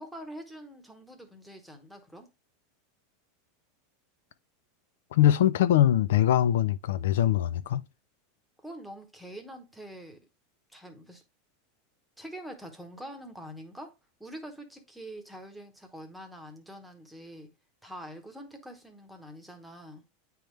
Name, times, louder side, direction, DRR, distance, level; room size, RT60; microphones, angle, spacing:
voice 1, 0.0-2.3 8.6-10.2 10.7-11.2 12.2-17.5 17.8-20.0, equal, ahead, 1.0 m, -45 dB
voice 2, 5.1-7.8, left 11 dB, 80° left, 0.4 m, -22 dB
9.1 x 3.5 x 3.1 m
supercardioid pair, 170°, 0 cm